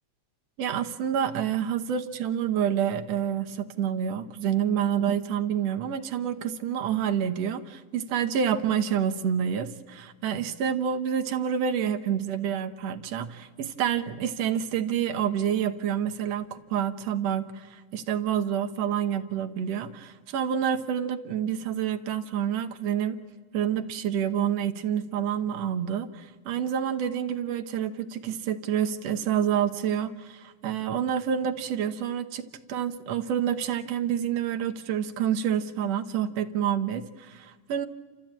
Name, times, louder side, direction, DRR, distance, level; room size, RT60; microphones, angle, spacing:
voice 1, 0.6-23.2 23.5-37.9, right 8 dB, 65° right, 6 dB, 2.0 m, -28 dB
29.0 x 14.0 x 8.8 m, 1.5 s
omnidirectional pair, 3.4 m